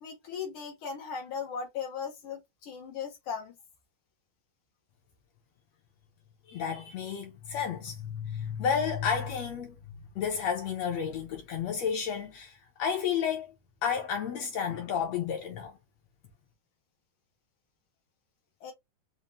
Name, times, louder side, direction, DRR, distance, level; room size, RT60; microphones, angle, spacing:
voice 1, 0.0-3.6 18.6-18.7, left 6 dB, 90° left, 1.1 m, -38 dB
voice 2, 6.5-9.8 10.2-13.5 13.8-15.7, left 7 dB, 70° left, 1.6 m, -31 dB
5.4 x 2.2 x 3.0 m
omnidirectional pair, 3.5 m